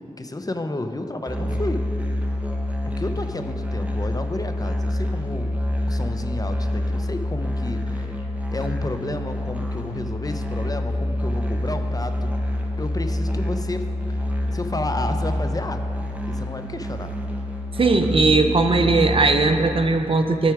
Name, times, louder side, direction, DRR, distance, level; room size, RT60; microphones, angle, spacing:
voice 1, 0.0-1.8 2.8-5.6 5.9-12.3 12.8-15.8 16.3-17.3, left 2 dB, 30° left, 7 dB, 0.6 m, -31 dB
Musical instrument, 1.3-19.6, left 1 dB, 10° right, 1.0 m, -27 dB
voice 2, 17.8-20.5, right 3 dB, 45° right, 6 dB, 0.6 m, -18 dB
12.5 x 4.3 x 4.8 m, 3.0 s
cardioid pair, 50°, 13 cm